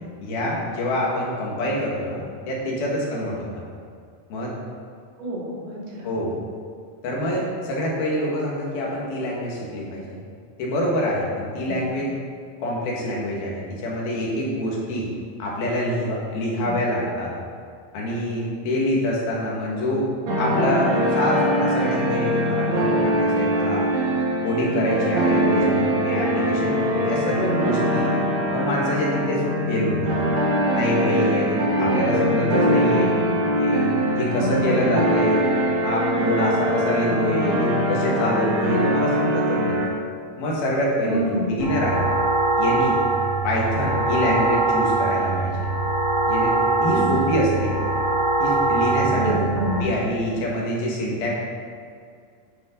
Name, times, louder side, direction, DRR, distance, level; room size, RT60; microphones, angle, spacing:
voice 1, 0.2-3.4 4.3-4.5 6.0-6.4 7.0-10.2 10.6-12.1 12.6-15.1 15.4-17.3 17.9-20.1 20.4-23.8 24.4-28.2 28.5-30.1 30.7-33.1 33.6-33.9 34.1-35.5 35.8-39.8 40.4-42.1 42.6-43.0 43.4-45.7 46.3-46.6 46.8-47.8 48.4-49.2 49.8-51.4, equal, 75° left, -4 dB, 3.9 m, -25 dB
voice 2, 5.2-6.1 11.6-11.9 16.6-16.8 25.4-25.7 31.8-32.5 32.9-33.3 34.4-34.9 41.0-41.7 46.9-47.3 49.1-49.9, right 1 dB, 85° right, -6 dB, 4.4 m, -28 dB
sound 1, 20.3-39.9, equal, 60° right, 2.4 m, -22 dB
sound 2, 41.6-49.8, right 2 dB, 40° left, 3.5 m, -22 dB
11.0 x 9.1 x 3.9 m, 2.2 s
omnidirectional pair, 4.3 m